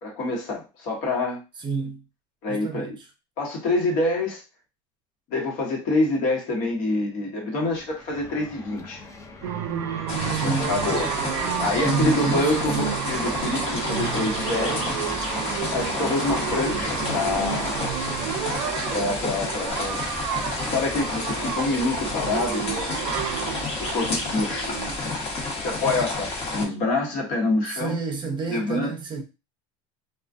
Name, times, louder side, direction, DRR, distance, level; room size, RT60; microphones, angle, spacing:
voice 1, 0.0-1.4 2.4-3.0 3.4-4.4 5.3-9.0 10.4-15.0 15.7-17.7 18.9-20.0 20.7-23.1 23.8-25.1 25.6-28.0 28.5-28.9, left 2 dB, 60° left, 1.1 m, -26 dB
voice 2, 1.6-2.0 2.5-2.9 10.3-10.7 11.7-12.5 27.7-29.2, right 4 dB, 30° right, 0.6 m, -28 dB
sound 1, 7.7-17.9, left 3 dB, 20° left, 0.5 m, -40 dB
sound 2, 9.4-25.0, right 10 dB, 90° right, 0.4 m, -31 dB
sound 3, 10.1-26.7, left 2 dB, 35° left, 1.1 m, -30 dB
2.3 x 2.3 x 2.4 m
supercardioid pair, 105°, 16 cm